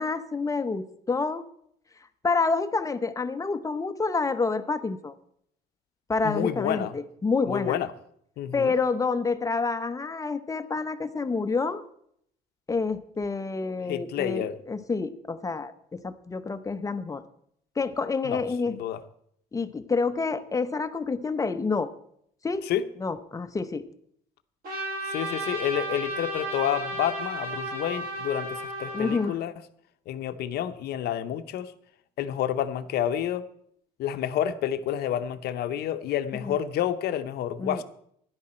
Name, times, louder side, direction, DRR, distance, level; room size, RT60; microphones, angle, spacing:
voice 1, 0.0-1.4 2.2-5.1 6.1-7.8 8.5-11.8 12.7-17.2 17.8-18.8 19.5-21.9 22.4-22.7 23.0-23.9 28.9-29.4 36.3-36.6 37.6-37.8, left 4 dB, 20° left, 11 dB, 0.8 m, -28 dB
voice 2, 6.2-6.9 7.5-7.9 8.4-8.7 13.9-14.5 18.2-18.4 18.7-19.0 22.7-22.9 25.1-29.5 30.1-31.7 32.2-33.4 34.0-37.8, left 10 dB, 70° left, 11 dB, 0.8 m, -29 dB
Trumpet, 24.6-29.3, right 2 dB, 65° right, 5.4 m, -33 dB
13.0 x 10.5 x 4.4 m, 0.69 s
cardioid pair, 110°, 17 cm